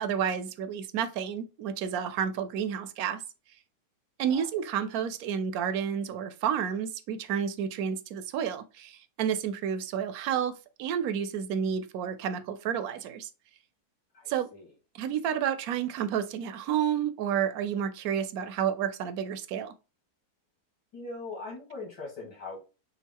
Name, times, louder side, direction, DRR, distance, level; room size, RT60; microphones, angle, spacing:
voice 1, 0.0-3.2 4.2-13.3 14.3-14.5 14.9-19.7, right 8 dB, 70° right, 1.0 m, -30 dB
voice 2, 14.1-14.7 20.9-22.6, left 3 dB, 85° left, 2.4 m, -41 dB
5.9 x 2.4 x 3.6 m
omnidirectional pair, 1.7 m